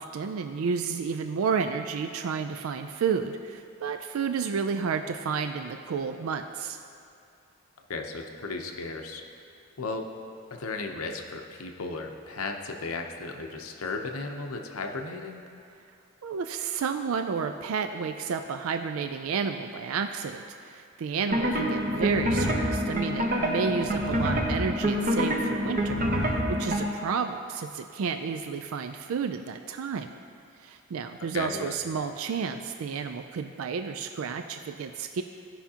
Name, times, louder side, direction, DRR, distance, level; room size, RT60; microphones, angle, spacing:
voice 1, 0.0-6.8 16.2-30.1 30.6-35.2, right 6 dB, 80° right, 7 dB, 0.4 m, -31 dB
voice 2, 7.9-9.2 9.8-10.1 10.5-15.4 31.3-31.7, left 3 dB, 90° left, 3 dB, 0.8 m, -35 dB
sound 1, 21.3-26.8, equal, 40° right, 0.9 m, -26 dB
16.0 x 5.7 x 2.8 m, 2.4 s
head